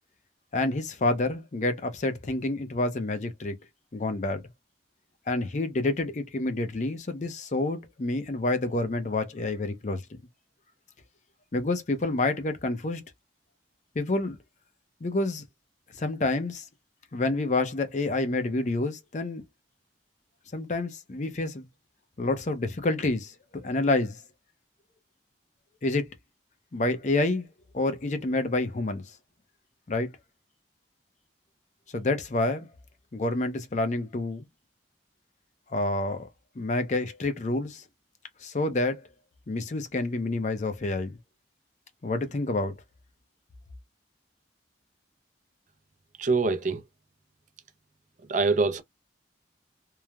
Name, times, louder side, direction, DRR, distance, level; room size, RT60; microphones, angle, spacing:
voice 1, 0.5-3.5 3.9-4.4 5.3-10.0 11.5-13.0 14.0-14.4 15.0-15.4 15.9-16.6 17.1-19.4 20.5-21.6 22.2-24.2 25.8-26.1 26.7-27.5 27.7-29.0 29.9-30.1 31.9-32.7 33.1-34.5 35.7-36.3 36.6-37.8 38.4-39.0 39.5-41.2 42.0-42.7, left 2 dB, 45° left, 0.5 m, -28 dB
voice 2, 46.2-46.8 48.3-48.8, right 3 dB, 45° right, 0.4 m, -24 dB
3.1 x 2.0 x 2.3 m
head